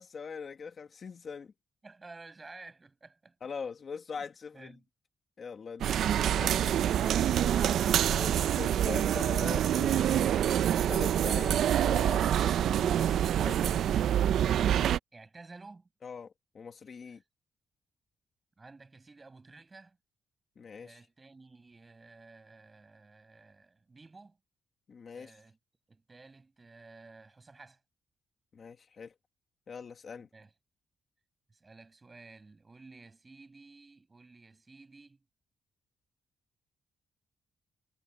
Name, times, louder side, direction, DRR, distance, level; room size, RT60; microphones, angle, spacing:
voice 1, 0.0-1.5 3.4-4.7 5.4-5.9 6.3-6.5 8.0-10.3 10.9-13.9 16.0-17.2 20.6-21.0 24.9-25.4 28.5-29.1 29.7-30.3, left 5 dB, 40° left, 1.5 m, -42 dB
voice 2, 1.8-3.4 4.1-4.2 4.5-4.8 5.8-7.8 15.1-15.9 17.1-17.2 18.6-20.0 20.8-24.4 25.1-25.6 25.9-27.8 30.3-30.5 31.5-35.2, right 3 dB, 20° right, 7.9 m, -53 dB
sound 1, 5.8-15.0, right 10 dB, 70° right, 0.4 m, -26 dB
wide cardioid pair, 165°, 0 cm